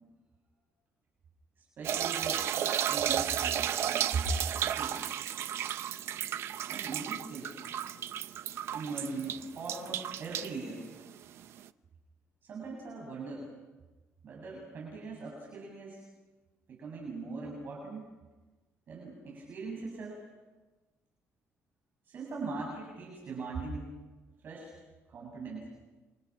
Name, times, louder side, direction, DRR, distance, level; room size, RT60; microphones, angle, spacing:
voice 1, 1.6-2.5 2.9-4.2 4.5-5.1 6.7-7.6 8.7-10.8 12.4-13.5 14.2-16.0 16.7-18.0 18.9-20.2 22.0-23.9 24.4-24.7 25.1-25.7, right 4 dB, 40° right, -2 dB, 7.9 m, -40 dB
sound 1, 1.8-11.6, right 10 dB, 55° right, 0.8 m, -33 dB
29.5 x 26.5 x 6.3 m, 1.2 s
cardioid pair, 175°, 5 cm